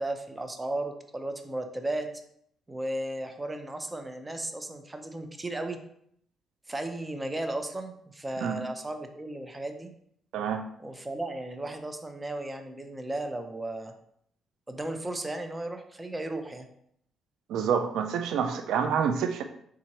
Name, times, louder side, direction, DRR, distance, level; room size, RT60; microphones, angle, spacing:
voice 1, 0.0-2.1 2.7-5.8 6.7-9.9 10.8-13.9 14.7-16.7, right 1 dB, 15° right, 6 dB, 0.5 m, -35 dB
voice 2, 10.3-10.6 17.5-19.4, right 7 dB, 80° right, 7 dB, 0.4 m, -27 dB
4.3 x 3.6 x 2.9 m, 0.69 s
cardioid pair, 90°, 0 cm